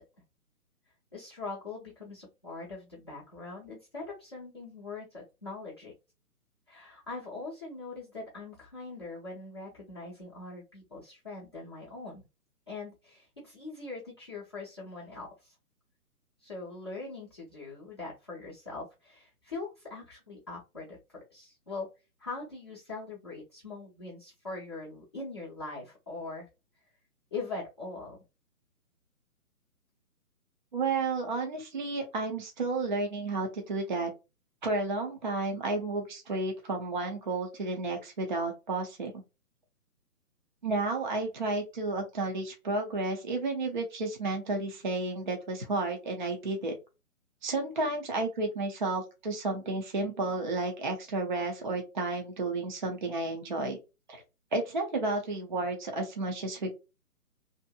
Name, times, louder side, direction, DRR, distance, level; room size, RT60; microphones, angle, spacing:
voice 1, 1.1-5.9 6.7-12.2 12.7-15.5 16.4-21.9 22.2-26.5 27.3-28.2, left 3 dB, 20° left, -6 dB, 0.5 m, -42 dB
voice 2, 30.7-34.1 34.6-39.2 40.6-46.8 47.4-53.8 54.1-54.2 54.5-56.7, right 3 dB, 35° right, 3 dB, 0.5 m, -32 dB
2.7 x 2.5 x 2.2 m, 0.27 s
figure-of-eight pair, 140°, 45 cm